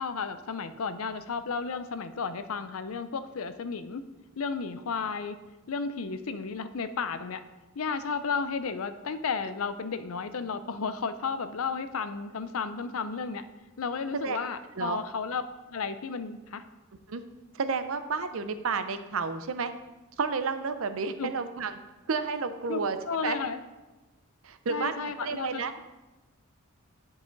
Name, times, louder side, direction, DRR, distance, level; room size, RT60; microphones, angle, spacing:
voice 1, 0.0-4.0 4.4-5.4 5.7-7.4 7.8-13.4 13.8-15.4 15.7-16.6 21.2-21.3 22.7-22.8 23.1-23.6 24.7-25.6, left 5 dB, 75° left, 11 dB, 0.5 m, -33 dB
voice 2, 17.5-19.7 20.2-21.7 22.1-23.0 23.2-23.4 24.4-25.7, right 5 dB, 70° right, 10 dB, 0.6 m, -31 dB
10.5 x 4.9 x 3.9 m, 1.1 s
head